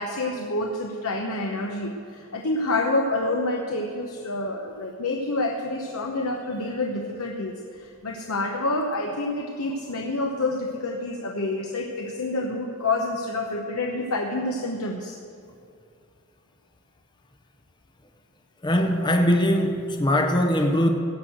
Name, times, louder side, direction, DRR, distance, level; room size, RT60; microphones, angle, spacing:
voice 1, 0.0-15.1, left 2 dB, 70° left, 1 dB, 0.9 m, -28 dB
voice 2, 18.6-20.9, equal, 20° left, 4 dB, 0.7 m, -21 dB
16.0 x 6.3 x 7.8 m, 2.4 s
head